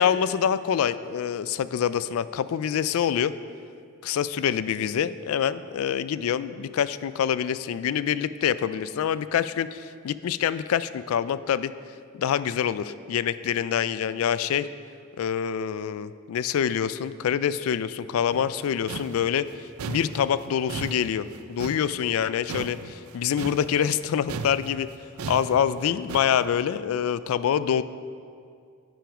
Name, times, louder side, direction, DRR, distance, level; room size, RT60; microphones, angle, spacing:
voice 1, 0.0-3.3 4.0-11.7 12.1-14.7 15.2-19.5 19.9-24.9 25.3-27.8, left 8 dB, 75° left, 15 dB, 0.3 m, -26 dB
sound 1, 18.3-24.0 24.3-26.5, right 4 dB, 90° right, 0.4 m, -37 dB
9.9 x 6.2 x 4.9 m, 2.3 s
head